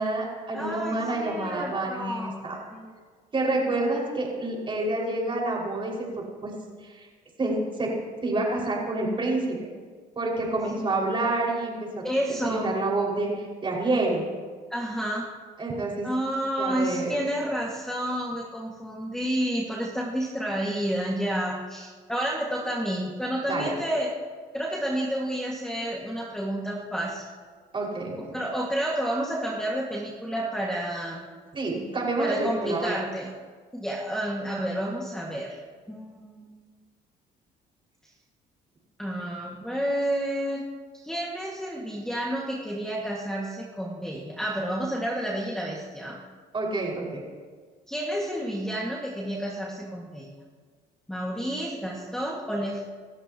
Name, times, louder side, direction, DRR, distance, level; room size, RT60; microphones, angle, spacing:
voice 1, 0.0-2.6 3.3-6.0 6.4-6.5 6.8-7.1 7.4-7.9 8.2-9.7 10.2-11.7 12.3-14.2 15.6-16.1 16.6-17.2 23.5-23.7 27.7-28.4 31.5-33.0 46.5-47.2, right 2 dB, 30° right, -2 dB, 5.5 m, -28 dB
voice 2, 0.5-2.9 12.0-12.7 14.7-15.3 16.0-24.1 24.5-27.2 28.2-31.3 32.2-33.3 33.7-35.6 35.9-36.6 39.0-40.6 40.9-46.2 47.9-50.3 51.1-52.8, right 1 dB, 5° left, -3 dB, 2.0 m, -30 dB
27.5 x 13.5 x 3.0 m, 1.5 s
cardioid pair, 110°, 17 cm